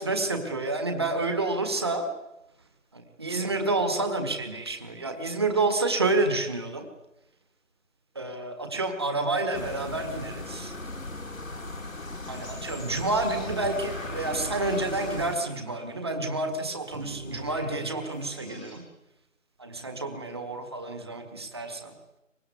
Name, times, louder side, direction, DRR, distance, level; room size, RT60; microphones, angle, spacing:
voice 1, 0.0-2.1 2.9-6.9 8.2-10.7 12.3-18.8 19.6-21.9, right 2 dB, 20° right, 6 dB, 1.8 m, -29 dB
sound 1, 9.5-15.4, left 2 dB, 80° left, 2.7 m, -37 dB
sound 2, 13.2-16.1 16.9-18.7, equal, ahead, 1.4 m, -45 dB
24.0 x 20.5 x 9.4 m, 0.88 s
figure-of-eight pair, 170°, 40 cm